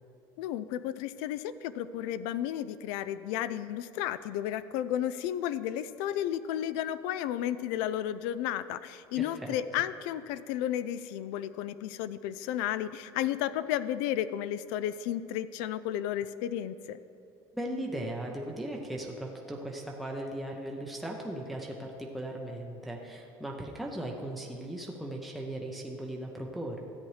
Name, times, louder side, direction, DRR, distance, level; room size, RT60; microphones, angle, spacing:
voice 1, 0.4-17.0, left 11 dB, 90° left, 14 dB, 0.4 m, -33 dB
voice 2, 9.1-9.6 17.5-26.8, right 1 dB, ahead, -1 dB, 0.5 m, -38 dB
13.5 x 8.7 x 3.2 m, 2.7 s
cardioid pair, 180°, 9 cm